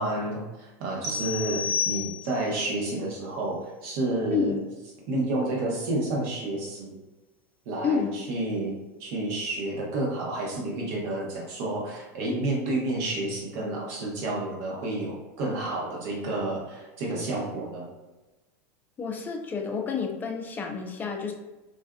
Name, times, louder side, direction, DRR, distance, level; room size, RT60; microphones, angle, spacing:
voice 1, 0.0-4.5 5.1-7.0 7.7-17.9, right 2 dB, 65° right, -3 dB, 1.0 m, -30 dB
sound 1, 1.0-2.6, left 6 dB, 45° right, 0.7 m, -30 dB
voice 2, 4.3-4.6 7.8-8.1 19.0-21.3, left 6 dB, 20° left, 3 dB, 0.4 m, -29 dB
2.5 x 2.3 x 2.3 m, 1.1 s
supercardioid pair, 115°, 8 cm